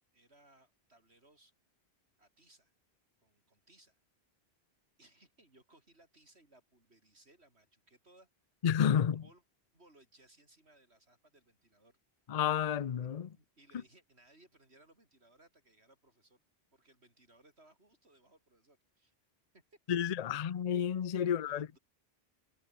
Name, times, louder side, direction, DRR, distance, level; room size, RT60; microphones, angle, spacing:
voice 1, 0.1-1.5 2.2-2.7 3.2-4.0 5.0-8.3 8.9-9.4 9.7-12.0 12.6-12.8 13.3-16.4 16.7-19.1 19.5-19.8 20.2-20.6 21.1-21.8, right 2 dB, 90° right, 6.2 m, -65 dB
voice 2, 8.6-9.2 12.3-13.3 19.9-21.7, left 8 dB, 45° left, 0.6 m, -30 dB
omnidirectional pair, 1.1 m